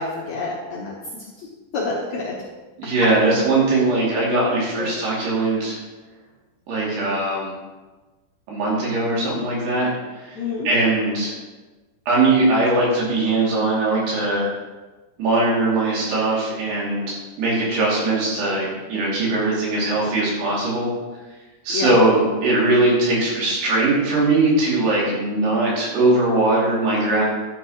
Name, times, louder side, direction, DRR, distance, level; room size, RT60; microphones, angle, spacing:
voice 1, 0.0-1.5 1.7-2.4 4.8-4.9 10.4-10.7 21.7-21.9, left 3 dB, 65° left, -5 dB, 1.9 m, -28 dB
voice 2, 2.8-5.8 6.7-7.6 8.5-9.9 10.2-10.4 10.6-11.3 12.1-14.5 15.2-20.9 21.6-27.2, right 2 dB, 75° right, -5 dB, 4.8 m, -20 dB
11.5 x 9.7 x 3.1 m, 1.2 s
omnidirectional pair, 4.8 m